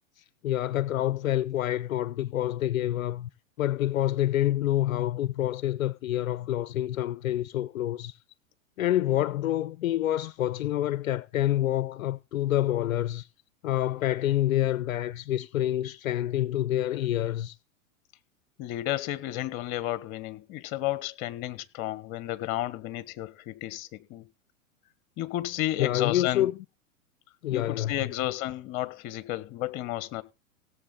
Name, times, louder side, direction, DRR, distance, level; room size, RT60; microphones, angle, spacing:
voice 1, 0.2-3.3 3.6-8.2 8.8-13.3 13.6-17.6 25.8-26.6 27.4-27.9, left 13 dB, 75° left, 0.6 m, -27 dB
voice 2, 18.6-24.3 25.2-26.5 27.5-30.2, left 14 dB, 40° left, 1.4 m, -32 dB
17.5 x 7.5 x 3.9 m
hypercardioid pair, 110°, 41 cm